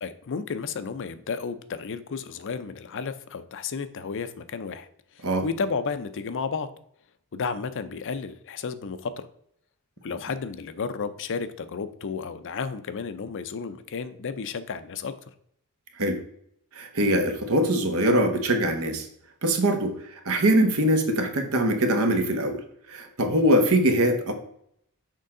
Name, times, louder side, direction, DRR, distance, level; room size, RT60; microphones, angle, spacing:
voice 1, 0.0-4.9 5.2-6.7 7.3-9.3 10.0-15.1, left 5 dB, 60° left, 12 dB, 0.5 m, -32 dB
voice 2, 16.7-19.1 19.4-19.9 20.2-22.6 22.9-24.3, right 1 dB, 70° right, 5 dB, 1.1 m, -22 dB
6.6 x 4.5 x 3.7 m, 0.70 s
head